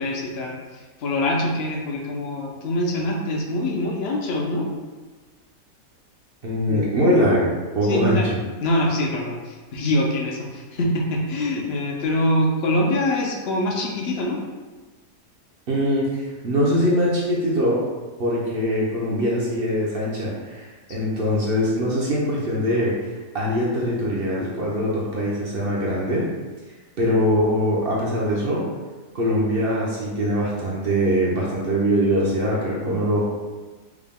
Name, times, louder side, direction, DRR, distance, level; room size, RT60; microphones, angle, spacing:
voice 1, 0.0-4.7 6.7-6.9 7.8-8.3 8.6-14.4, left 1 dB, 60° left, 0 dB, 0.7 m, -24 dB
voice 2, 6.4-8.4 15.7-17.8 18.2-23.1 23.3-26.2 27.0-28.6 29.1-33.3, equal, 55° right, -5 dB, 0.7 m, -22 dB
4.7 x 2.2 x 3.6 m, 1.3 s
omnidirectional pair, 1.7 m